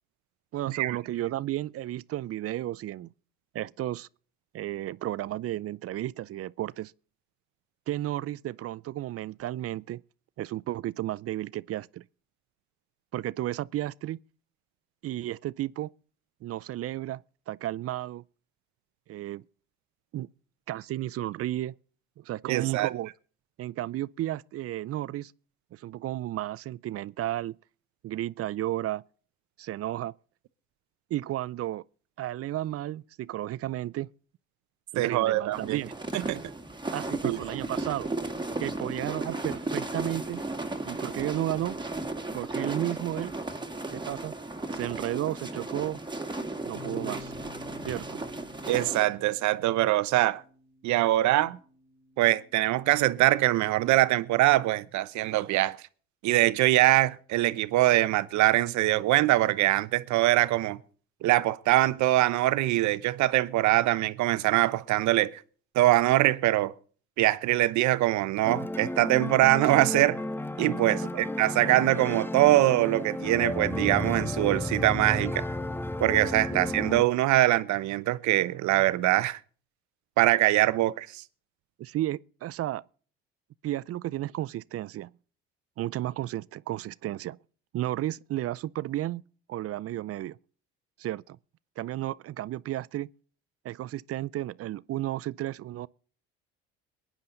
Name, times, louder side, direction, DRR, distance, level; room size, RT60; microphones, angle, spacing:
voice 1, 0.5-3.1 3.5-4.1 4.5-6.9 7.9-10.0 10.4-12.0 13.1-14.2 15.0-15.9 16.4-17.2 17.5-18.2 19.1-19.4 20.1-20.3 20.7-21.8 22.2-23.1 23.6-25.3 25.7-27.5 28.0-29.0 29.6-30.1 31.1-31.8 32.2-34.1 34.9-35.9 36.9-38.1 38.6-40.4 40.9-41.8 42.3-43.3 43.9-44.3 44.7-46.0 46.7-47.3 47.8-48.2 70.9-71.3 76.5-76.6 81.8-82.8 83.6-85.1 85.8-87.4 87.7-89.2 89.5-90.4 91.0-91.4 91.8-93.1 93.6-95.9, right 14 dB, 50° right, 0.5 m, -33 dB
voice 2, 22.5-22.9 35.0-35.8 36.3-36.4 37.2-37.6 48.7-50.4 50.8-51.6 52.2-55.8 56.2-60.8 61.2-65.4 65.7-66.7 67.2-70.2 70.6-75.5 76.0-79.4 80.2-81.2, right 16 dB, 65° right, 1.0 m, -23 dB
sound 1, 35.5-49.0, right 2 dB, 15° right, 2.0 m, -35 dB
Bass guitar, 46.7-53.0, left 5 dB, 80° left, 4.0 m, -51 dB
sound 2, 68.4-77.0, left 1 dB, 5° left, 0.8 m, -33 dB
22.5 x 9.8 x 3.9 m
hypercardioid pair, 65°, 31 cm